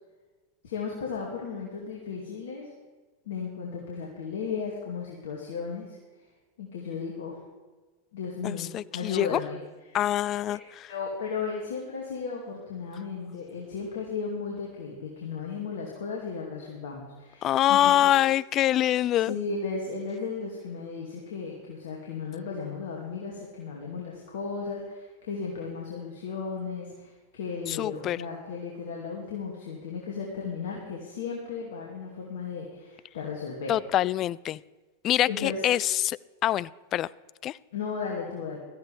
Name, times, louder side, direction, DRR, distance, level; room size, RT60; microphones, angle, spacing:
voice 1, 0.6-2.7 3.3-6.0 6.6-7.4 8.1-9.6 9.9-10.0 10.5-10.6 10.9-18.1 19.3-33.7 35.3-35.6 37.7-38.6, left 5 dB, 70° left, -2 dB, 2.4 m, -35 dB
voice 2, 8.4-9.4 9.9-10.9 17.4-19.3 27.7-28.2 33.7-34.6 35.0-37.1 37.4-37.6, left 13 dB, 40° left, 22 dB, 0.3 m, -25 dB
17.0 x 13.5 x 3.5 m, 1.3 s
hypercardioid pair, 95°, 0 cm